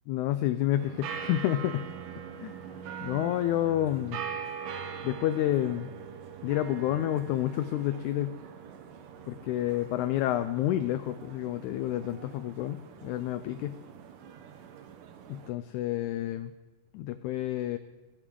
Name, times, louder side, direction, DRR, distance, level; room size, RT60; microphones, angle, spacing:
voice 1, 0.1-1.8 2.4-2.6 3.0-4.2 5.0-5.9 6.4-8.4 9.3-13.8 15.3-16.5 16.9-17.8, left 13 dB, 85° left, 11 dB, 1.7 m, -29 dB
sound 1, 0.8-15.5, right 7 dB, 75° right, 2.4 m, -43 dB
21.0 x 9.4 x 3.8 m, 1.2 s
omnidirectional pair, 3.9 m